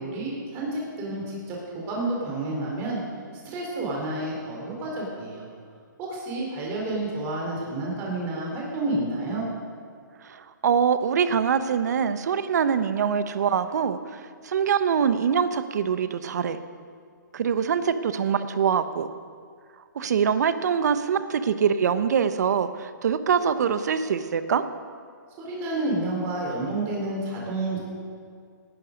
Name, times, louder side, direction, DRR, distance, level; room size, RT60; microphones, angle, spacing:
voice 1, 0.0-3.0 3.4-5.5 6.0-9.4 25.4-27.8, right 2 dB, 20° right, -3 dB, 4.0 m, -30 dB
voice 2, 10.2-16.6 17.3-19.1 19.9-24.6, right 7 dB, 55° right, 12 dB, 0.9 m, -24 dB
18.0 x 12.0 x 5.2 m, 2.1 s
hypercardioid pair, 160°, 11 cm